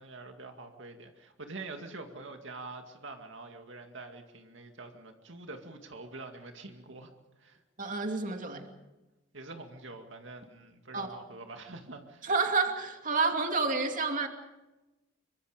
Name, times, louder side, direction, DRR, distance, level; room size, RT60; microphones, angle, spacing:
voice 1, 0.0-7.1 7.4-7.6 9.3-12.3, right 3 dB, 70° right, 4 dB, 2.3 m, -45 dB
voice 2, 7.8-8.7 10.9-11.1 12.2-14.3, right 4 dB, 45° right, 4 dB, 2.6 m, -29 dB
26.5 x 24.5 x 5.1 m, 1.0 s
head